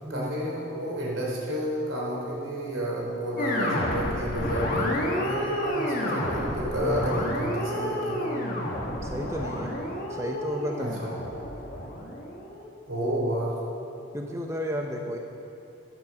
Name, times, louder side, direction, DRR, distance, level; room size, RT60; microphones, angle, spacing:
voice 1, 0.1-8.3 10.8-11.1 12.9-13.6, equal, 85° right, -3 dB, 3.7 m, -30 dB
sound 1, 3.4-12.7, left 1 dB, 45° left, 1.7 m, -30 dB
voice 2, 9.0-9.8 10.1-11.0 14.1-15.2, equal, 15° right, 2 dB, 0.7 m, -32 dB
15.0 x 9.1 x 6.2 m, 2.9 s
head